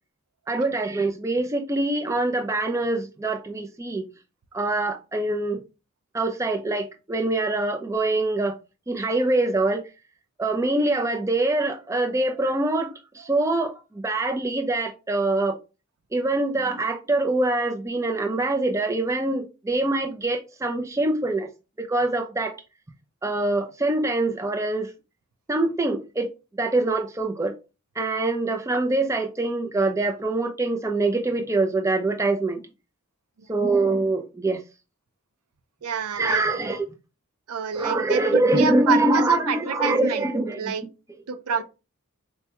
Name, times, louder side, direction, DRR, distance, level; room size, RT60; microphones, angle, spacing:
voice 1, 0.5-4.0 4.5-5.6 6.1-8.6 8.9-9.8 10.4-13.7 14.0-15.6 16.1-21.5 21.8-22.5 23.2-24.9 25.5-26.3 26.6-27.5 28.0-32.6 33.5-34.6 36.2-36.9 37.8-40.6, right 2 dB, 15° right, 0.3 m, -24 dB
voice 2, 35.8-36.4 37.5-40.3 40.6-40.8 41.3-41.6, right 6 dB, 85° right, 0.5 m, -27 dB
4.4 x 2.2 x 2.9 m
head